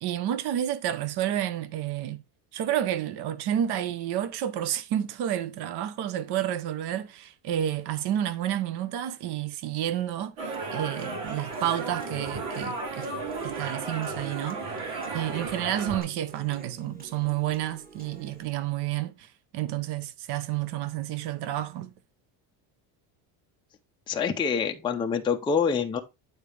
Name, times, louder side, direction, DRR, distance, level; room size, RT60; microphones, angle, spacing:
voice 1, 0.0-2.2 2.5-13.1 13.4-14.6 15.1-21.9, right 11 dB, 55° right, 0.9 m, -30 dB
sound 1, 10.4-16.0, right 3 dB, 90° right, 2.8 m, -34 dB
Human voice / Acoustic guitar, 10.5-18.5, right 2 dB, 20° right, 1.5 m, -49 dB
voice 2, 24.1-26.0, left 6 dB, 10° left, 0.5 m, -26 dB
8.9 x 4.0 x 3.3 m
cardioid pair, 130°, 48 cm